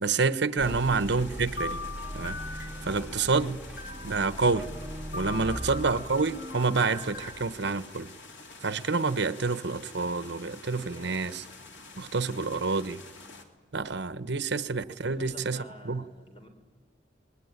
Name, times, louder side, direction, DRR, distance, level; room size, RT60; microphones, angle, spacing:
voice 1, 0.0-1.8 2.1-3.6 4.0-4.7 5.1-8.1 8.6-11.4 12.0-13.0 13.7-16.0, right 4 dB, 65° right, 1.0 m, -28 dB
sound 1, 0.6-13.4, left 3 dB, 80° left, 3.0 m, -48 dB
sound 2, 0.6-7.8, equal, 5° right, 2.1 m, -40 dB
sound 3, 1.5-3.4 3.8-4.8 5.1-7.4, left 3 dB, 60° left, 2.9 m, -41 dB
voice 2, 10.7-11.4 14.9-16.5, left 1 dB, 30° left, 3.7 m, -49 dB
26.0 x 20.5 x 9.6 m
head